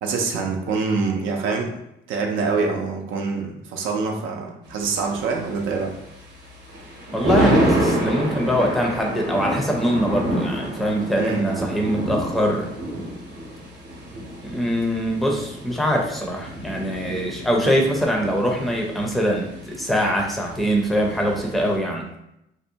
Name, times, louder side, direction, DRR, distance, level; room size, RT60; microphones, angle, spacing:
voice 1, 0.0-1.7 2.1-5.9 11.1-11.6, right 4 dB, 80° right, 1 dB, 0.5 m, -25 dB
Thunder, 4.7-21.8, right 1 dB, 60° right, 0.8 m, -28 dB
voice 2, 7.1-12.7 14.4-22.1, equal, ahead, 0 dB, 0.5 m, -23 dB
2.6 x 2.1 x 2.7 m, 0.82 s
cardioid pair, 90°, 20 cm